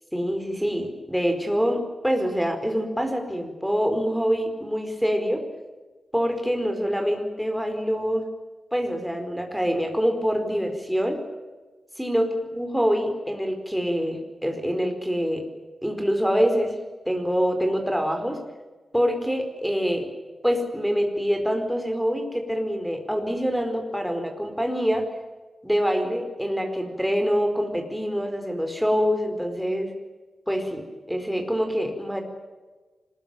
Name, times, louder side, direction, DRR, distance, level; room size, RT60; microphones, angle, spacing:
voice 1, 0.1-5.4 6.1-8.3 8.7-11.2 12.0-15.4 15.8-16.8 17.0-18.4 18.9-20.1 20.4-25.1 25.6-29.9 30.5-32.2, equal, ahead, 4 dB, 4.7 m, -25 dB
25.5 x 21.0 x 9.1 m, 1.3 s
wide cardioid pair, 155°, 0 cm